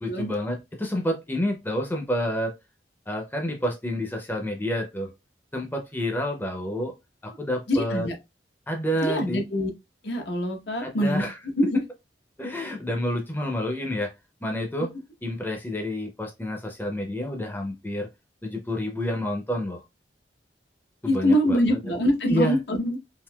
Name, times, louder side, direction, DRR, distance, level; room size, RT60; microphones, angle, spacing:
voice 1, 0.0-2.5 3.1-5.1 5.5-6.9 7.2-8.1 8.7-9.4 10.8-11.4 12.4-14.1 14.4-14.9 15.2-18.1 18.4-19.8 21.0-21.8 22.3-22.6, equal, 10° left, 0.5 m, -29 dB
voice 2, 7.7-8.1 9.0-9.7 10.0-11.2 11.5-11.8 21.1-23.0, equal, 70° left, 0.8 m, -24 dB
3.6 x 2.6 x 2.2 m
head